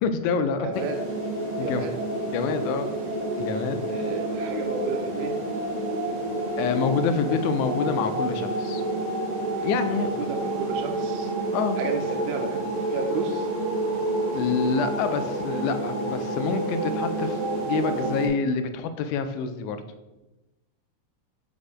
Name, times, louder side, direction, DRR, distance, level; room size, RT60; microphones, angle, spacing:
voice 1, 0.0-0.7 1.6-1.9 2.3-2.9 3.4-3.8 6.6-8.8 9.6-10.1 11.5-11.8 14.3-19.8, left 5 dB, 80° left, 9 dB, 1.9 m, -27 dB
voice 2, 0.6-1.0 1.6-1.9 3.9-5.3 9.9-11.3 11.8-13.5, right 5 dB, 85° right, 5 dB, 2.1 m, -33 dB
sound 1, 0.7-18.3, right 2 dB, 45° right, 2.4 m, -29 dB
5.2 x 4.2 x 4.8 m, 1.0 s
omnidirectional pair, 3.6 m